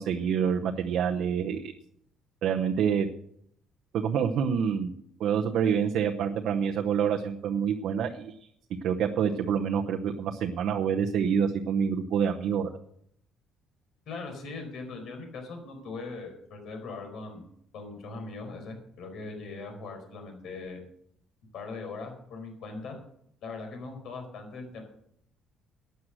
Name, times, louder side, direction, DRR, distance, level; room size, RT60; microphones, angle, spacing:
voice 1, 0.0-1.7 2.4-3.1 3.9-4.9 5.2-8.3 8.8-12.7, right 7 dB, 60° right, 3 dB, 0.9 m, -27 dB
voice 2, 14.1-17.5 17.7-20.8 21.5-23.0 23.4-24.8, left 3 dB, 60° left, 4 dB, 4.6 m, -40 dB
12.5 x 9.4 x 6.4 m, 0.70 s
cardioid pair, 160°, 0 cm